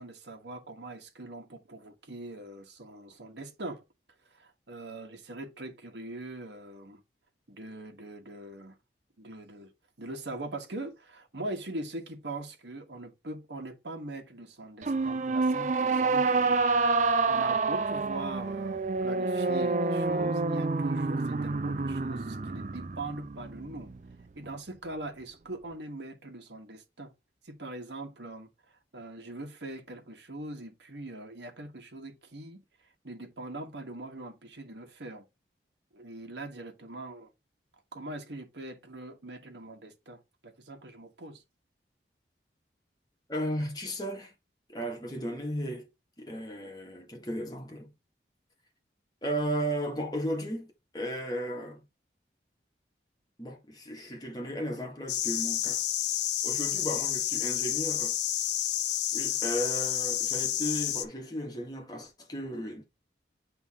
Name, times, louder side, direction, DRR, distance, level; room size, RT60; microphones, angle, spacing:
voice 1, 0.0-3.8 4.3-7.0 7.5-8.8 9.2-9.7 10.0-23.9 24.3-27.1 27.4-28.5 28.9-32.6 33.0-35.3 35.9-37.3 37.9-41.4, right 2 dB, 80° right, 1.3 m, -42 dB
sound 1, 14.8-24.2, right 3 dB, 45° right, 0.5 m, -28 dB
voice 2, 43.3-44.3 44.7-45.9 46.2-47.9 49.2-51.8 53.4-55.8 56.4-58.2 59.1-62.8, equal, 20° left, 1.7 m, -35 dB
sound 2, 55.1-61.1, left 11 dB, 80° left, 0.7 m, -30 dB
8.0 x 3.5 x 3.6 m
head